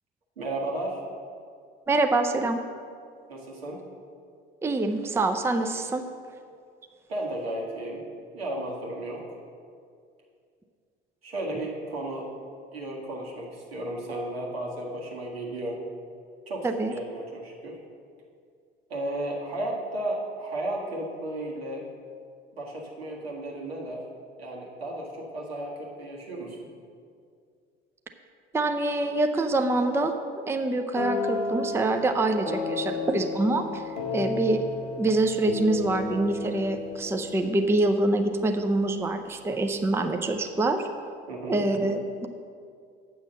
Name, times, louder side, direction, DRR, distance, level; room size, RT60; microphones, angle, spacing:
voice 1, 0.4-1.0 3.3-3.9 7.1-8.0 8.3-9.3 11.2-12.3 12.7-15.8 16.5-17.8 18.9-21.9 22.5-24.0 24.4-26.7 41.3-41.7, right 1 dB, 80° right, -2 dB, 1.7 m, -34 dB
voice 2, 1.9-2.6 4.6-6.0 16.6-16.9 28.5-30.1 30.5-33.8 34.1-34.6 35.0-40.8 41.5-42.3, right 2 dB, 10° right, 6 dB, 0.5 m, -25 dB
sound 1, 31.0-38.7, left 4 dB, 80° left, 1.2 m, -33 dB
8.0 x 6.2 x 6.6 m, 2.3 s
figure-of-eight pair, 60°, 30 cm